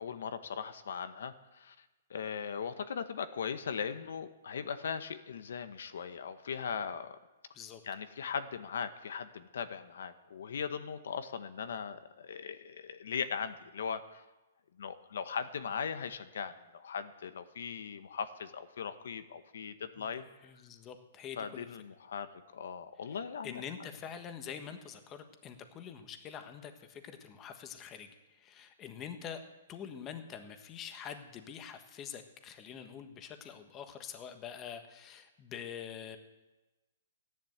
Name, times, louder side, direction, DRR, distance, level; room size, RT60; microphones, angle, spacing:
voice 1, 0.0-7.2 7.8-14.2 14.8-20.3 21.4-23.6, left 6 dB, 75° left, 10 dB, 1.2 m, -39 dB
voice 2, 20.4-21.7 23.4-28.1 28.3-29.4 29.7-36.2, left 8 dB, 20° left, 7 dB, 1.4 m, -45 dB
15.0 x 11.0 x 8.0 m, 1.1 s
hypercardioid pair, 160°, 0 cm